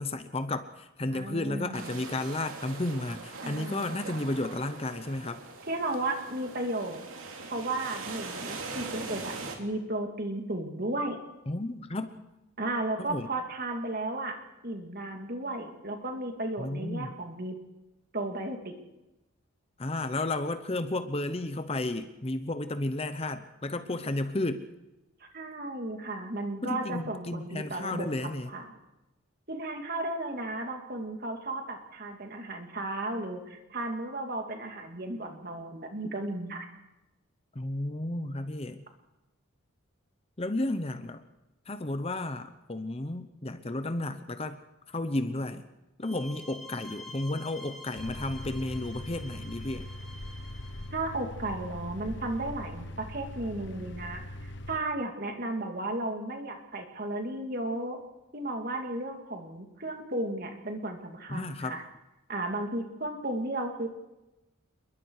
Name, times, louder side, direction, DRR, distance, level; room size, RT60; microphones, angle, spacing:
voice 1, 0.0-5.4 11.5-12.2 13.0-13.3 16.6-17.2 19.8-24.7 26.6-28.5 37.5-38.9 40.4-41.2 41.7-44.6 44.9-45.6 46.0-49.9 61.3-61.8, left 2 dB, 25° left, 10 dB, 0.8 m, -33 dB
voice 2, 1.1-2.0 3.4-4.0 5.7-7.0 7.5-11.2 12.6-14.4 14.6-17.6 18.1-18.7 25.3-28.1 28.5-28.7 29.5-36.7 50.9-58.0 58.3-61.8 62.3-63.9, right 2 dB, 45° right, 4 dB, 2.7 m, -34 dB
sound 1, 1.7-9.6, right 3 dB, 70° right, 3.1 m, -41 dB
sound 2, 46.0-50.9, left 1 dB, ahead, 3.2 m, -48 dB
sound 3, 48.0-54.8, left 1 dB, 55° left, 1.2 m, -41 dB
28.0 x 22.0 x 4.9 m, 0.97 s
head